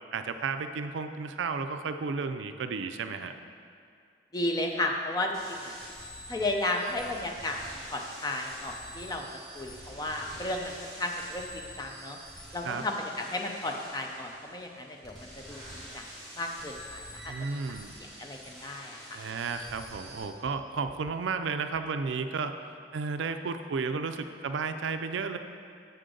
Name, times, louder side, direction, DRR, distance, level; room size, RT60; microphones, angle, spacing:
voice 1, 0.1-3.3 12.6-12.9 17.3-17.9 19.1-22.6 22.9-25.4, right 4 dB, 85° right, 8 dB, 0.4 m, -33 dB
voice 2, 4.3-5.8 6.3-9.3 9.5-12.2 12.5-16.1 16.3-17.6 18.0-19.2, left 1 dB, 20° left, 2 dB, 0.5 m, -34 dB
sound 1, 5.3-20.2, equal, ahead, 1.8 m, -46 dB
7.7 x 6.5 x 3.8 m, 2.3 s
head